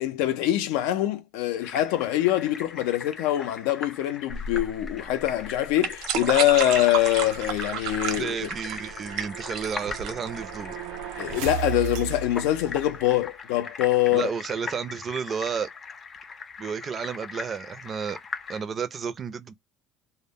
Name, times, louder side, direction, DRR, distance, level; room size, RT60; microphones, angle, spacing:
voice 1, 0.0-8.5 11.2-14.3, left 13 dB, 85° left, 0.5 m, -24 dB
sound 1, 1.6-18.6, left 5 dB, 25° left, 0.4 m, -40 dB
sound 2, 4.3-11.3, right 7 dB, 65° right, 0.7 m, -32 dB
sound 3, 6.6-13.3, right 10 dB, 90° right, 0.4 m, -38 dB
voice 2, 8.1-10.8 14.1-15.7 16.6-18.2 18.5-19.5, right 6 dB, 30° right, 0.4 m, -32 dB
2.1 x 2.0 x 3.5 m
cardioid pair, 135°, 0 cm